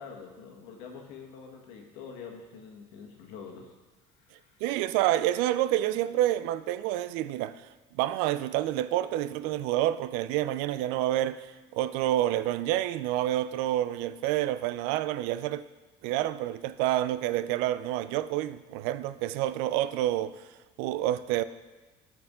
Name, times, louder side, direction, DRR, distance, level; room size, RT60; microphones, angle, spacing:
voice 1, 0.0-3.7 4.2-4.6, left 6 dB, 75° left, 1.4 m, -45 dB
voice 2, 4.6-7.7 8.0-15.6 16.0-20.4 20.8-21.4, right 13 dB, 80° right, 0.4 m, -28 dB
13.5 x 4.7 x 3.7 m
cardioid pair, 115°, 16 cm